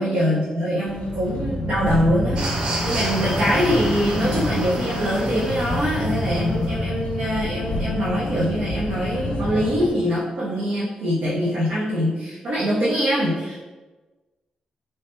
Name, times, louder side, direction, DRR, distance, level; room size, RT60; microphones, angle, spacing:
voice 1, 0.0-13.5, equal, 75° right, -7 dB, 0.8 m, -23 dB
sound 1, 0.8-9.9, left 1 dB, 65° left, 0.5 m, -27 dB
sound 2, 2.3-6.5, right 2 dB, 45° right, 0.5 m, -31 dB
3.2 x 3.0 x 3.2 m, 1.2 s
wide cardioid pair, 170°, 2 cm